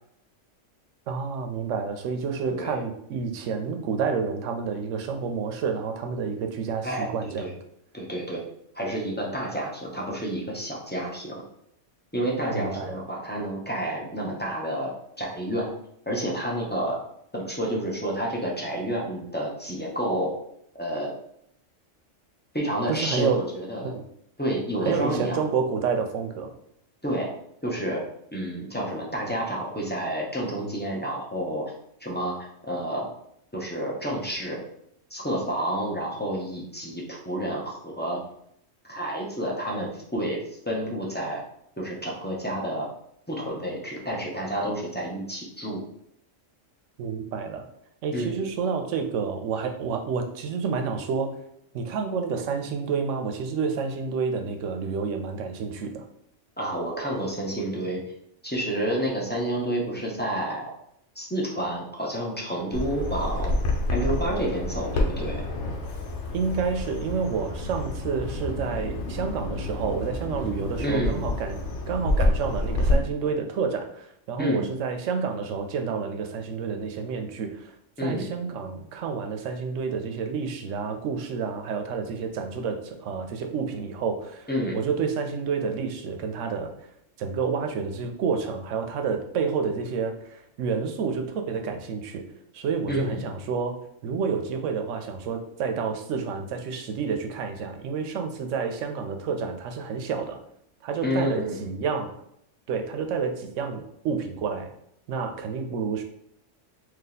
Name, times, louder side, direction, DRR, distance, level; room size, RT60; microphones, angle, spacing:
voice 1, 1.1-7.6 12.5-13.0 22.9-23.4 23.8-24.0 24.8-26.5 47.0-47.7 48.0-51.4 51.7-56.0 66.3-71.6 71.9-77.7 78.0-84.5 84.7-86.7 87.2-92.2 92.5-100.4 100.8-102.1 102.7-104.7 105.1-106.0, right 5 dB, 75° right, 5 dB, 0.9 m, -29 dB
voice 2, 2.5-2.8 6.8-7.5 7.9-8.4 8.7-11.4 12.1-14.9 15.2-15.7 16.1-17.0 17.3-20.3 20.8-21.1 22.5-23.9 24.4-25.4 27.0-27.3 27.6-28.0 28.3-31.7 32.0-32.4 32.7-33.1 33.5-34.6 35.1-38.2 38.9-40.4 40.7-41.4 41.8-42.9 43.3-45.8 48.1-48.5 56.6-58.0 58.4-60.7 61.2-63.5 63.9-65.4 70.8-71.2 74.4-74.7 78.0-78.3 84.5-84.8 92.9-93.2 101.0-101.6, right 1 dB, 15° left, -3 dB, 0.4 m, -29 dB
Bird vocalization bird call bird song, 62.7-73.0, left 2 dB, 65° left, 1.0 m, -28 dB
2.9 x 2.8 x 3.9 m, 0.73 s
omnidirectional pair, 1.3 m